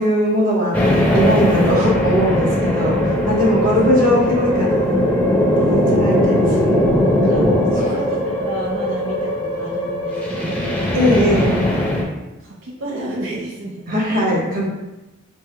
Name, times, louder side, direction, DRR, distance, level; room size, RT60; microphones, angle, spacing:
voice 1, 0.0-4.9 5.6-6.9 7.4-7.5 7.8-7.9 10.9-11.6 13.9-14.6, equal, 45° right, -4 dB, 1.1 m, -20 dB
sound 1, 0.7-12.0, left 1 dB, 5° left, 0.7 m, -19 dB
voice 2, 7.1-7.5 7.8-10.7 12.4-14.3, right 1 dB, 80° right, -3 dB, 0.7 m, -31 dB
3.4 x 3.2 x 3.4 m, 1.0 s
head